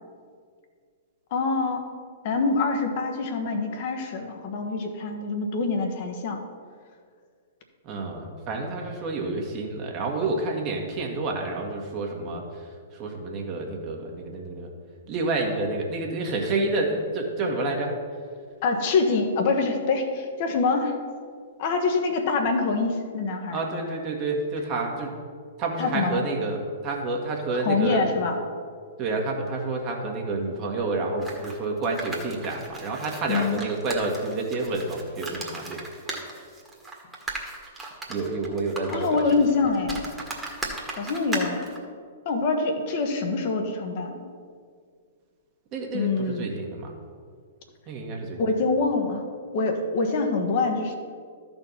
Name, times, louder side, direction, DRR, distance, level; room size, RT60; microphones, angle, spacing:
voice 1, 1.3-1.8 2.2-6.4 18.6-21.0 21.6-23.6 25.8-26.2 27.5-28.4 33.3-33.6 38.9-40.1 41.0-41.7 42.2-44.3 45.9-46.5 48.4-49.2 49.5-51.0, left 4 dB, 50° left, 4 dB, 1.2 m, -25 dB
voice 2, 7.8-14.7 15.1-17.9 23.5-25.1 25.6-28.1 29.0-35.8 38.1-39.2 45.7-46.9 47.9-48.5, right 2 dB, 35° right, 1 dB, 1.8 m, -29 dB
sound 1, 31.2-41.8, right 2 dB, 10° right, 1.7 m, -37 dB
13.0 x 4.5 x 5.6 m, 2.1 s
figure-of-eight pair, 115°, 0 cm